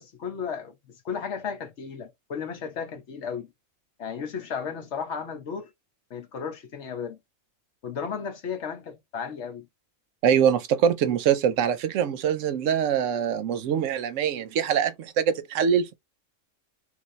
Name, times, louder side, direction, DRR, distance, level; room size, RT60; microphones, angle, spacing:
voice 1, 0.0-3.5 4.0-5.7 6.1-7.2 7.8-9.7, left 6 dB, 65° left, 1.2 m, -34 dB
voice 2, 10.2-16.0, right 8 dB, 85° right, 1.0 m, -24 dB
3.3 x 2.6 x 3.1 m
omnidirectional pair, 1.3 m